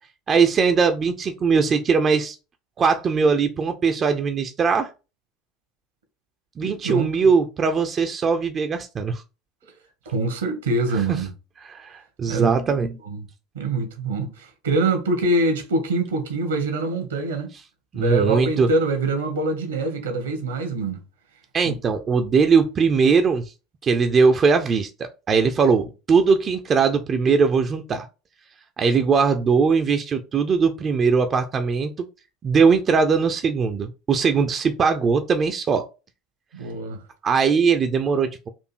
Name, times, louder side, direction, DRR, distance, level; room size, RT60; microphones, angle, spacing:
voice 1, 0.3-2.4 2.8-4.9 6.6-9.2 11.1-11.2 11.6-13.0 17.9-18.7 21.5-23.5 23.8-28.1 28.8-31.9 32.4-35.9 37.2-38.5, right 5 dB, 30° right, 0.5 m, -20 dB
voice 2, 6.6-7.1 10.0-11.3 12.3-12.5 13.0-13.2 13.5-17.5 17.9-21.0 21.6-21.8 36.5-37.0, right 2 dB, 70° right, 1.1 m, -24 dB
4.4 x 2.6 x 4.4 m
figure-of-eight pair, 70°, 0 cm